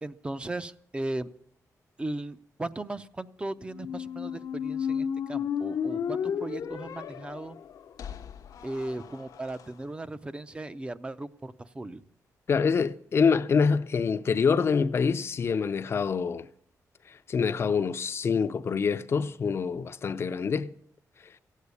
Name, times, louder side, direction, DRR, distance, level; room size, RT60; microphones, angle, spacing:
voice 1, 0.0-1.3 2.0-7.6 8.6-12.0, right 2 dB, 15° right, 0.5 m, -37 dB
Squeak, 3.7-9.6, left 7 dB, 80° left, 0.9 m, -33 dB
voice 2, 12.5-16.5 17.1-20.7, left 5 dB, 45° left, 0.6 m, -26 dB
16.0 x 8.3 x 9.6 m
wide cardioid pair, 165°, 6 cm